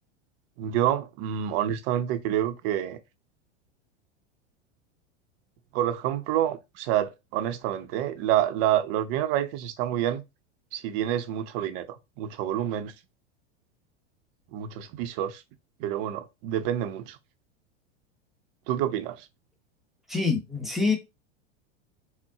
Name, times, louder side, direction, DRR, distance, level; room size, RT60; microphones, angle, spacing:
voice 1, 0.6-3.0 5.7-10.2 10.7-11.9 12.2-12.9 14.5-15.4 15.8-17.2 18.7-19.3, right 11 dB, 55° right, 0.7 m, -28 dB
voice 2, 20.1-21.0, left 4 dB, ahead, 0.9 m, -25 dB
4.2 x 2.2 x 3.5 m
hypercardioid pair, 115°, 34 cm